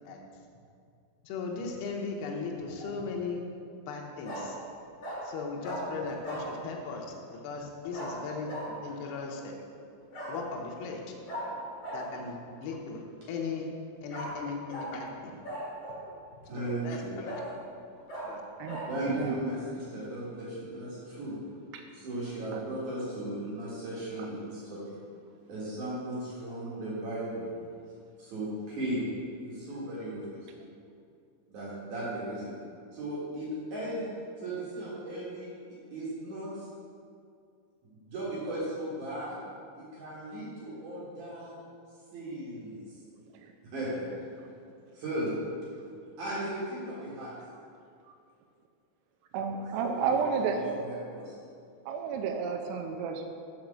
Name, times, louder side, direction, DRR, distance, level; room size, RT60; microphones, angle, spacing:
voice 1, 1.2-3.5 3.8-4.6 5.2-7.1 7.4-9.4 10.3-11.0 11.9-13.7 14.0-15.1 16.6-17.4 18.3-18.4, left 4 dB, 75° left, 1 dB, 2.8 m, -37 dB
Bark, 2.5-2.9 4.2-4.4 5.0-5.2 5.6-5.8 6.2-6.5 7.9-8.1 8.5-8.7 10.1-10.3 11.3-11.4 11.8-12.0 14.1-14.3 14.7-14.9 15.4-16.1 16.6-16.7 17.2-17.4 18.1-18.2 18.7-18.8, equal, 45° left, 2.5 m, -38 dB
voice 2, 16.4-17.2 18.9-21.4 21.9-24.9 25.5-27.5 28.2-29.1 29.4-30.4 31.5-32.6 32.9-34.0 34.4-35.5 35.9-36.7 37.8-39.4 39.7-41.6 42.1-42.8 43.6-44.4 44.9-45.3 46.2-47.3 49.8-50.2 50.5-51.3, right 1 dB, 60° right, -8 dB, 2.4 m, -36 dB
voice 3, 18.6-19.4 21.7-21.8 22.5-22.6 43.4-43.5 49.3-50.6 51.9-53.3, right 5 dB, 85° right, 3 dB, 2.4 m, -31 dB
5.9 x 5.9 x 6.4 m, 2.4 s
omnidirectional pair, 5.2 m